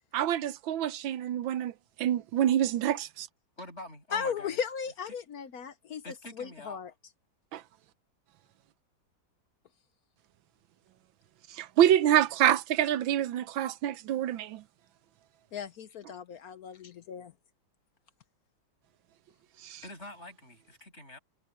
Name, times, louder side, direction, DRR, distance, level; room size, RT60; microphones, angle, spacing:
voice 1, 0.1-1.7 2.0-3.3 7.5-7.6 11.5-14.6 19.6-19.8, right 11 dB, 85° right, 1.5 m, -26 dB
voice 2, 3.6-4.6 6.0-6.8 19.8-21.2, left 1 dB, 35° left, 7.2 m, -45 dB
voice 3, 4.1-6.9 15.5-17.3, left 7 dB, 60° left, 1.1 m, -36 dB
omnidirectional pair, 2.1 m